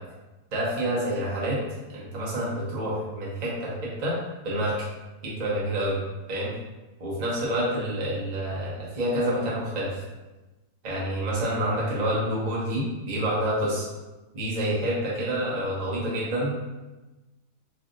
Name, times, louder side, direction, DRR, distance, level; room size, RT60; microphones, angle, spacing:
voice 1, 0.5-1.6 1.9-4.2 4.4-4.7 5.2-6.0 6.3-6.5 7.0-10.0 10.8-13.9 14.3-16.6, right 1 dB, 35° right, -6 dB, 0.7 m, -28 dB
3.3 x 2.7 x 2.5 m, 1.1 s
omnidirectional pair, 1.7 m